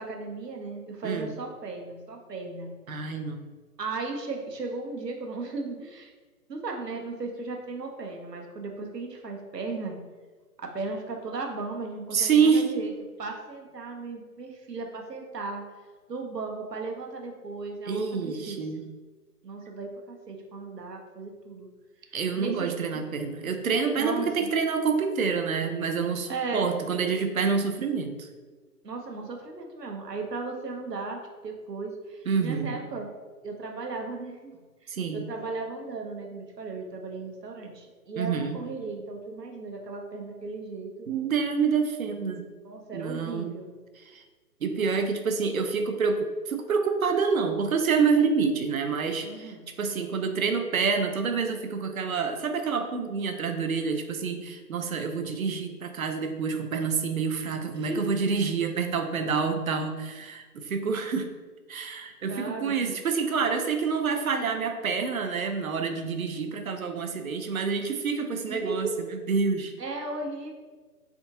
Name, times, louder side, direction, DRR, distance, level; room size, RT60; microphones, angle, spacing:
voice 1, 0.0-2.7 3.8-6.1 6.5-10.0 10.6-15.6 16.1-18.8 19.4-21.7 22.3-23.1 24.0-24.5 26.3-26.7 28.8-33.1 33.4-41.1 42.6-43.7 49.2-49.6 57.7-58.1 62.3-62.9 68.5-69.0 69.8-70.5, right 3 dB, 85° right, 2 dB, 0.9 m, -36 dB
voice 2, 2.9-3.5 12.1-12.7 17.9-18.8 22.1-28.3 32.3-32.9 34.9-35.3 38.2-38.6 41.1-42.5 42.9-43.6 44.1-44.2 44.6-61.3 61.7-68.9 69.3-69.7, right 5 dB, 60° right, 6 dB, 0.5 m, -27 dB
3.5 x 3.5 x 2.8 m, 1.4 s
figure-of-eight pair, 145°, 47 cm